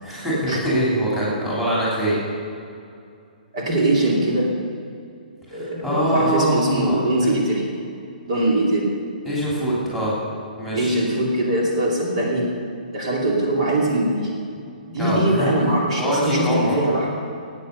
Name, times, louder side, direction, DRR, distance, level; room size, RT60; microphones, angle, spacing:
voice 1, 0.0-2.1 5.5-6.9 7.2-7.4 9.2-10.2 10.6-11.0 15.0-15.5 16.0-16.8, equal, 5° right, -8 dB, 3.3 m, -23 dB
voice 2, 3.5-4.6 5.5-7.7 8.3-8.9 10.7-12.6 12.9-14.4 14.9-17.2, right 1 dB, 45° right, -2 dB, 2.7 m, -21 dB
17.5 x 8.9 x 6.6 m, 2.4 s
hypercardioid pair, 175°, 5 cm